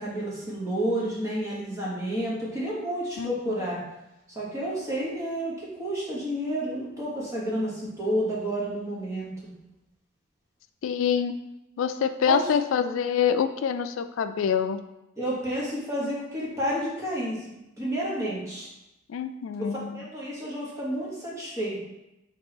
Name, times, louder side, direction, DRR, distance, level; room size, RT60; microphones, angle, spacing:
voice 1, 0.0-3.8 4.3-9.5 12.2-12.5 15.2-17.4 17.8-18.7 19.6-21.8, right 1 dB, 15° right, -6 dB, 1.3 m, -30 dB
voice 2, 3.2-3.6 10.8-11.3 11.8-14.8 19.1-20.1, left 7 dB, 80° left, 10 dB, 0.3 m, -26 dB
3.6 x 3.0 x 4.3 m, 0.92 s
head